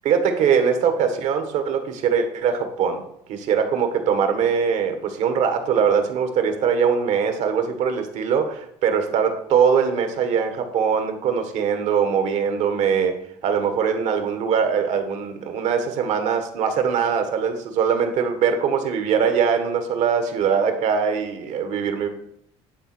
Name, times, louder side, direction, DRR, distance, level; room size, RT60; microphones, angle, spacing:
voice 1, 0.0-22.1, right 6 dB, 65° right, 7 dB, 1.5 m, -22 dB
10.5 x 3.9 x 6.0 m, 0.72 s
supercardioid pair, 100°, 13 cm